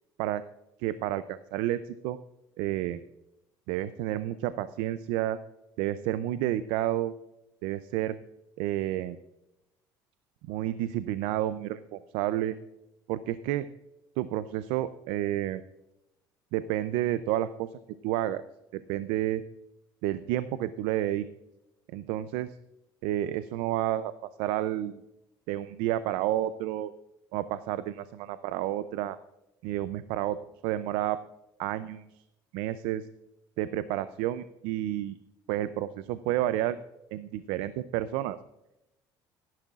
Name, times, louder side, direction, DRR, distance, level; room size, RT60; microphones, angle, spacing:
voice 1, 0.8-2.2 2.6-3.0 3.7-5.4 5.8-7.1 7.6-8.2 8.6-9.2 10.5-12.6 13.1-13.7 14.2-15.6 16.5-17.7 18.0-18.4 18.7-19.4 20.0-21.3 21.9-22.5 23.0-24.1 24.4-25.0 25.5-26.9 27.3-29.2 29.6-30.4 30.6-31.2 31.6-32.0 32.5-33.1 33.6-35.2 35.5-36.8 37.1-38.4, right 13 dB, 85° right, 14 dB, 0.5 m, -30 dB
15.5 x 10.5 x 2.4 m, 0.90 s
supercardioid pair, 100°, 9 cm